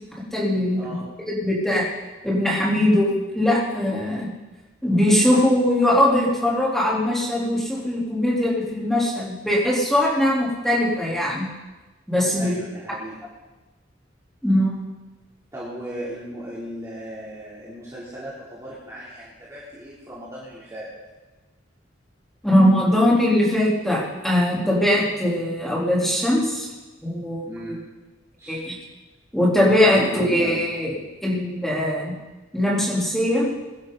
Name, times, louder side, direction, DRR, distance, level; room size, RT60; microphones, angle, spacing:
voice 1, 0.1-0.9 1.3-1.8 2.2-4.3 4.8-11.5 12.1-12.5 14.4-14.8 22.4-26.7 27.0-27.5 28.5-28.7 29.3-30.9 31.2-32.1 32.5-33.5, left 1 dB, ahead, -6 dB, 3.5 m, -21 dB
voice 2, 12.4-13.2 15.5-20.9 27.4-27.8 28.4-28.6 29.9-30.6, right 1 dB, 15° right, -9 dB, 3.2 m, -36 dB
22.0 x 11.5 x 4.0 m, 1.2 s
head